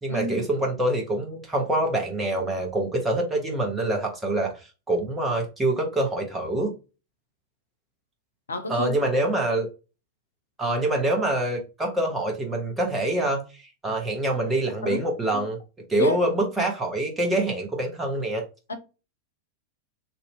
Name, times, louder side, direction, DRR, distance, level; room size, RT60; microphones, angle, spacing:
voice 1, 0.0-6.7 8.7-9.7 10.6-15.6 15.9-18.4, right 1 dB, 10° right, 1.1 m, -25 dB
voice 2, 8.5-8.9 14.8-15.0 15.3-15.5 16.0-16.2 18.7-18.8, left 3 dB, 70° left, 0.5 m, -29 dB
2.8 x 2.6 x 3.2 m
figure-of-eight pair, 90°, 0 cm